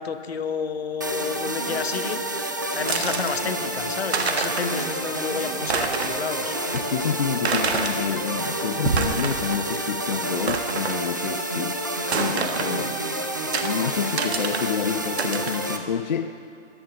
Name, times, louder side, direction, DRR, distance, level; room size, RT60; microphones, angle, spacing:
voice 1, 0.0-6.5 12.7-13.1, left 6 dB, 60° left, 10 dB, 1.2 m, -31 dB
sound 1, 1.0-15.8, right 1 dB, 15° right, 0.4 m, -29 dB
sound 2, 2.9-3.3 3.8-3.9 4.1-4.8 5.1-5.2 5.6-6.2 6.7-6.8 7.5-8.0 8.7-9.6 9.9-10.0 10.5-11.0 12.1-12.7 13.5-13.7 14.2-14.7 15.2-15.6, right 5 dB, 60° right, 1.4 m, -27 dB
voice 2, 6.7-11.8 12.1-12.9 13.6-16.3, left 7 dB, 40° left, 7 dB, 0.5 m, -28 dB
15.0 x 11.5 x 7.5 m, 2.8 s
hypercardioid pair, 155°, 35 cm